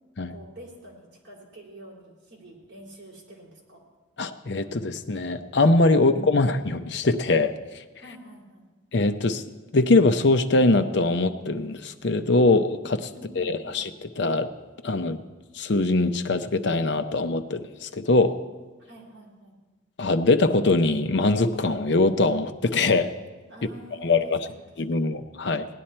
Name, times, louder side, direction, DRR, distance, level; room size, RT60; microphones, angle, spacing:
voice 1, 0.3-3.8 5.9-6.1 8.0-8.7 13.1-13.8 18.8-19.6 23.5-24.2 24.5-24.6 24.9-25.1, right 1 dB, 60° right, -2 dB, 3.3 m, -47 dB
voice 2, 4.2-7.8 8.9-9.4 9.7-13.1 13.4-14.5 14.8-15.2 15.5-18.4 20.0-23.1 24.0-24.5 24.8-25.7, left 2 dB, 60° left, 9 dB, 0.6 m, -22 dB
17.5 x 10.0 x 4.4 m, 1.3 s
head